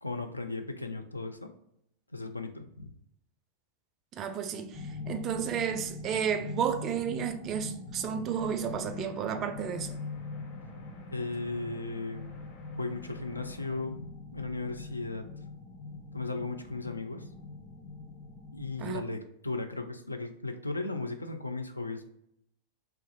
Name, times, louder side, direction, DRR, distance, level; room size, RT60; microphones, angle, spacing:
voice 1, 0.0-1.5 2.1-2.9 11.1-12.3 12.7-15.3 16.1-17.3 18.5-22.2, left 3 dB, 85° left, 0.3 m, -36 dB
voice 2, 4.1-10.0 18.8-19.0, right 8 dB, 30° right, 0.3 m, -32 dB
sound 1, 4.7-19.0, left 3 dB, 25° left, 0.8 m, -43 dB
sound 2, 8.3-13.8, left 4 dB, 60° left, 1.2 m, -56 dB
2.9 x 2.4 x 3.0 m
figure-of-eight pair, 90°, 0 cm